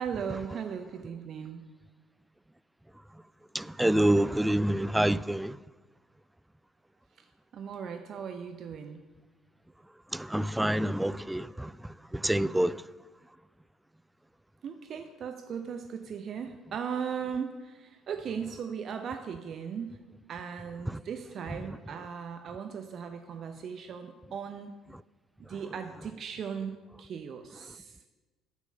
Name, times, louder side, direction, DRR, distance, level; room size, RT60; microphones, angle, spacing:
voice 1, 0.0-1.6 7.2-7.3 7.5-9.0 14.6-20.0 20.3-24.8 25.4-28.0, right 7 dB, 50° right, 0.7 m, -38 dB
voice 2, 3.5-5.6 10.1-11.7 12.1-12.8, right 1 dB, 5° right, 0.3 m, -27 dB
12.0 x 8.4 x 5.6 m
figure-of-eight pair, 50°, 0 cm